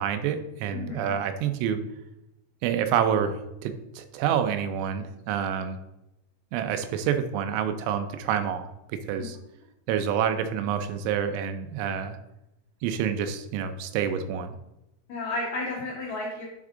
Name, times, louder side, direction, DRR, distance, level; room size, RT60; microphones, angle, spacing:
voice 1, 0.0-1.8 2.6-5.8 6.5-9.4 9.9-12.2 12.8-14.6, right 8 dB, 85° right, 8 dB, 3.1 m, -28 dB
voice 2, 0.7-1.1 15.1-16.4, left 2 dB, 90° left, -4 dB, 1.6 m, -32 dB
9.4 x 3.7 x 3.7 m, 0.90 s
omnidirectional pair, 5.4 m